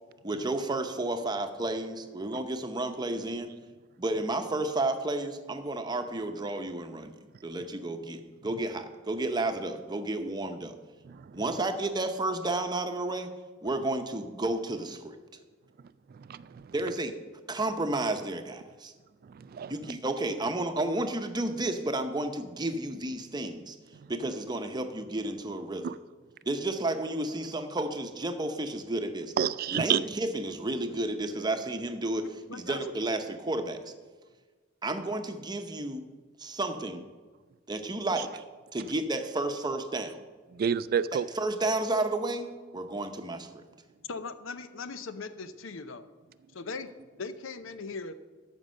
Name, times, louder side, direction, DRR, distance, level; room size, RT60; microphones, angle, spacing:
voice 1, 0.2-3.5 4.0-10.8 11.3-13.3 13.6-15.2 16.7-17.1 17.5-18.9 19.7-23.8 24.1-25.9 26.5-29.3 29.7-33.9 34.8-36.0 36.4-37.0 37.7-38.4 38.7-40.2 41.3-43.6, right 2 dB, 20° right, 7 dB, 0.8 m, -32 dB
voice 2, 16.3-16.6 19.3-19.7 25.8-25.9 29.4-30.0 40.5-41.3, right 7 dB, 50° right, 16 dB, 0.3 m, -29 dB
voice 3, 32.2-32.8 44.1-46.1 46.5-48.1, left 4 dB, 80° left, 12 dB, 0.7 m, -40 dB
13.0 x 5.3 x 6.3 m, 1.4 s
head